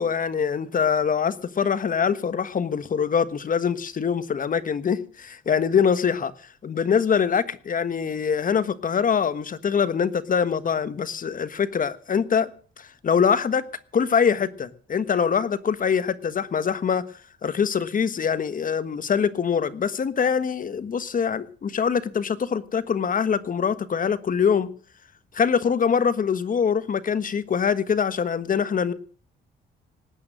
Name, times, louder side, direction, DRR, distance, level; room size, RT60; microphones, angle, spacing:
voice 1, 0.0-6.3 6.6-12.5 12.8-13.6 13.9-17.0 17.4-24.7 25.3-28.9, left 7 dB, 45° left, 1.4 m, -24 dB
19.0 x 8.9 x 7.5 m
cardioid pair, 90°, 20 cm